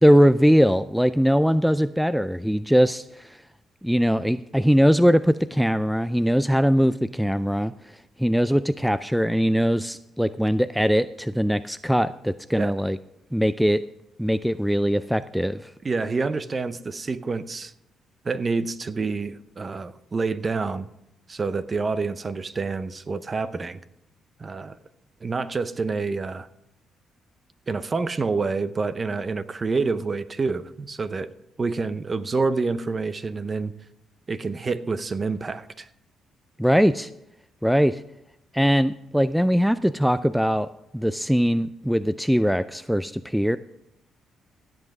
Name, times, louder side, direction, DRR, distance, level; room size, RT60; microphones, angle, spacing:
voice 1, 0.0-3.4 3.8-7.7 8.2-13.0 13.3-13.8 14.2-15.7 36.6-37.1 37.6-38.0 38.5-43.6, equal, ahead, 0.3 m, -21 dB
voice 2, 15.8-17.7 18.2-20.9 21.3-23.8 24.4-24.8 25.2-26.5 27.7-31.3 31.6-33.7 34.3-35.9, right 4 dB, 30° right, 0.7 m, -27 dB
16.0 x 7.9 x 3.6 m
cardioid pair, 90°, 0 cm